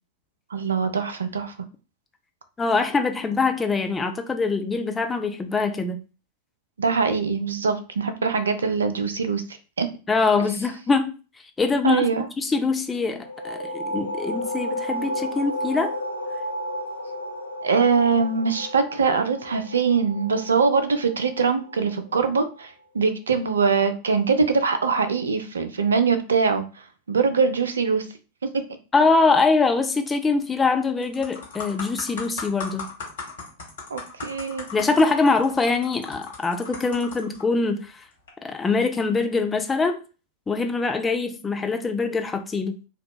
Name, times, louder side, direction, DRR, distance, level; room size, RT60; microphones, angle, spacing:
voice 1, 0.5-1.5 6.8-9.4 9.8-9.9 11.8-12.3 17.6-26.6 27.1-28.1 33.9-34.7, right 5 dB, 70° right, 0.3 m, -22 dB
voice 2, 2.6-6.0 10.1-11.1 11.6-12.1 12.4-16.0 28.9-32.8 34.7-38.0 38.4-40.0 40.5-42.8, left 4 dB, 15° left, 0.3 m, -23 dB
sound 1, 13.1-22.5, equal, 80° left, 0.5 m, -33 dB
sound 2, 30.4-30.7 31.0-37.4 38.1-38.3, left 4 dB, 60° left, 0.9 m, -37 dB
2.7 x 2.2 x 2.3 m
figure-of-eight pair, 90°, 0 cm